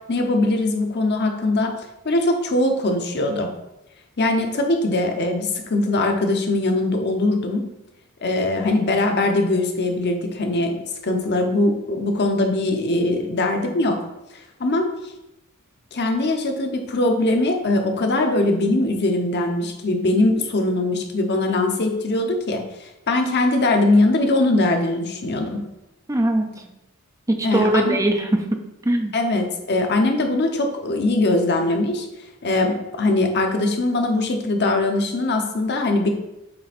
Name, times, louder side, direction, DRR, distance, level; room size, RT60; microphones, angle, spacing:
voice 1, 0.1-1.7 2.0-3.5 4.2-7.7 8.2-10.7 11.0-14.0 14.6-14.9 15.9-25.6 27.4-28.0 29.1-32.1 32.4-36.1, left 2 dB, 50° left, 4 dB, 0.9 m, -21 dB
voice 2, 26.1-26.7 27.3-28.4 28.8-29.1, right 1 dB, 15° right, 5 dB, 0.5 m, -21 dB
7.8 x 3.4 x 4.2 m, 0.91 s
head